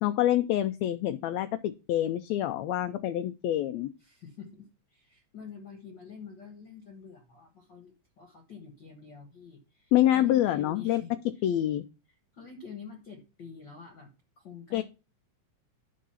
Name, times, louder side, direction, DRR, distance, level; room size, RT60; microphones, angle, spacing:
voice 1, 0.0-3.9 9.9-11.0 11.4-11.8 14.7-14.8, left 12 dB, 80° left, 9 dB, 1.6 m, -26 dB
voice 2, 4.0-11.4 12.3-14.1 14.4-14.8, left 6 dB, 50° left, 3 dB, 1.5 m, -47 dB
11.0 x 3.8 x 5.7 m, 0.30 s
omnidirectional pair, 3.6 m